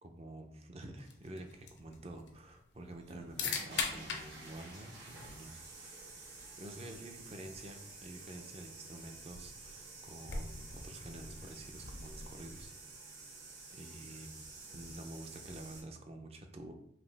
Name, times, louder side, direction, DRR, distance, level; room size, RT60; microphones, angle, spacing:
voice 1, 0.0-6.1 6.6-12.7 13.7-14.3 14.7-16.7, right 1 dB, 35° right, 5 dB, 0.5 m, -49 dB
sound 1, 1.0-12.9, left 5 dB, 70° left, 0.7 m, -45 dB
sound 2, 2.9-15.8, right 3 dB, 60° right, 1.6 m, -51 dB
4.9 x 2.7 x 3.3 m, 0.71 s
head